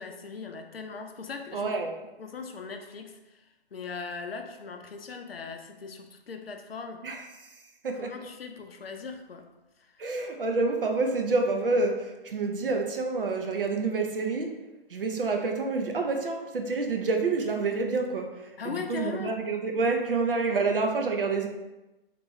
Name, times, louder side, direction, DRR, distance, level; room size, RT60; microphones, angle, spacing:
voice 1, 0.0-1.8 2.2-3.4 3.7-7.1 7.9-9.5 9.8-10.2 18.6-19.4, left 5 dB, 75° left, 5 dB, 0.5 m, -39 dB
voice 2, 1.5-1.9 7.0-7.2 7.8-8.1 10.0-14.6 14.9-21.5, right 3 dB, 65° right, 3 dB, 0.6 m, -28 dB
3.0 x 2.5 x 3.1 m, 1.0 s
figure-of-eight pair, 130°, 30 cm